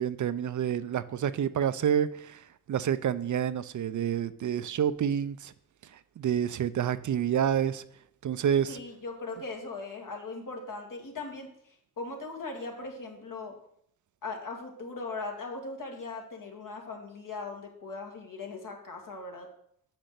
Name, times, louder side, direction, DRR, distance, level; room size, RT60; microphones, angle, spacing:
voice 1, 0.0-5.5 6.2-7.8 8.2-8.8, right 9 dB, 60° right, 0.5 m, -28 dB
voice 2, 8.7-11.5 12.0-13.5 14.2-19.5, left 3 dB, 70° left, 2.1 m, -39 dB
6.2 x 6.0 x 6.7 m
cardioid pair, 55°, 34 cm